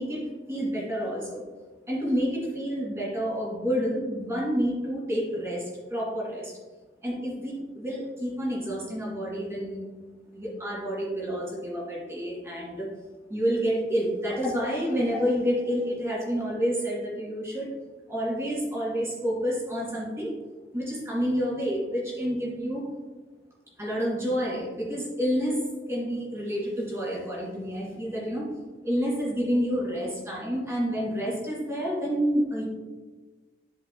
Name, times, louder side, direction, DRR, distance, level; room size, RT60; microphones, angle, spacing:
voice 1, 0.0-1.4 1.9-6.5 7.0-9.9 10.3-12.9 13.3-17.7 18.1-20.3 20.7-22.9 23.8-25.6 25.9-28.5 28.8-32.6, equal, 15° right, -4 dB, 2.1 m, -29 dB
10.5 x 4.9 x 2.2 m, 1.3 s
head